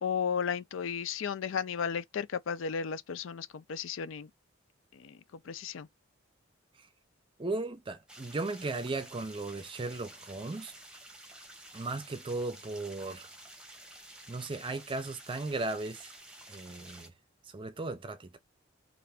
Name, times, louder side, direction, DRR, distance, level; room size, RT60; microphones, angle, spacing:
voice 1, 0.0-4.3 4.9-5.9, left 7 dB, 70° left, 0.4 m, -34 dB
voice 2, 7.4-10.7 11.7-13.3 14.3-16.1 16.5-17.1 17.5-18.4, right 3 dB, 25° right, 0.5 m, -36 dB
sound 1, 8.1-17.1, right 1 dB, 5° right, 0.9 m, -51 dB
3.3 x 2.5 x 3.4 m
head